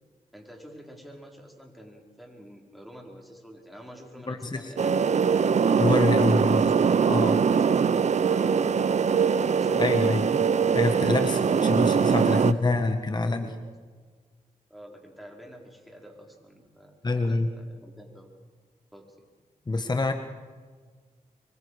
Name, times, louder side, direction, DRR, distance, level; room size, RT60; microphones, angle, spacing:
voice 1, 0.3-5.0 11.2-13.7 14.7-18.3 18.9-19.1, equal, ahead, 0 dB, 5.0 m, -47 dB
voice 2, 4.3-4.7 5.7-6.6 7.1-7.4 9.8-10.4 10.7-13.5 17.0-17.5 19.7-20.1, left 2 dB, 30° left, 7 dB, 1.5 m, -26 dB
sound 1, 4.8-12.5, right 6 dB, 55° right, 0.7 m, -22 dB
25.5 x 24.0 x 5.0 m, 1.5 s
cardioid pair, 65°, 14 cm